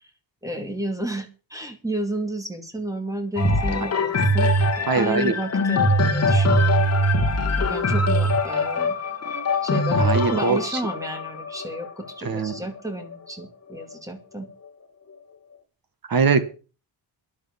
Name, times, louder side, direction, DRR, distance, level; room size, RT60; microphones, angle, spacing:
voice 1, 0.4-6.8 7.6-9.0 9.6-14.5, right 1 dB, 10° right, 6 dB, 2.4 m, -32 dB
sound 1, 3.4-13.1 13.8-13.9, left 1 dB, 35° left, 2.2 m, -22 dB
voice 2, 4.9-5.3 7.3-7.5 10.0-10.8 12.2-12.5 16.1-16.4, right 5 dB, 55° right, 10 dB, 2.1 m, -22 dB
11.0 x 10.0 x 7.2 m, 0.35 s
wide cardioid pair, 170°, 42 cm